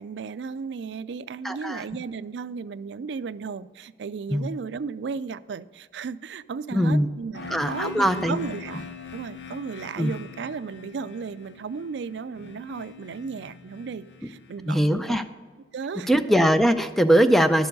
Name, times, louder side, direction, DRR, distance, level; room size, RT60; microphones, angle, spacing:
voice 1, 0.0-8.8 9.1-15.2 15.7-16.1, right 5 dB, 75° right, 15 dB, 0.4 m, -35 dB
voice 2, 1.4-1.8 4.3-4.5 6.7-7.1 7.5-8.4 10.0-10.1 14.7-15.2 16.1-17.7, equal, ahead, 9 dB, 0.4 m, -21 dB
sound 1, 7.3-15.1, left 5 dB, 75° left, 0.7 m, -42 dB
11.5 x 6.9 x 5.3 m, 1.5 s
head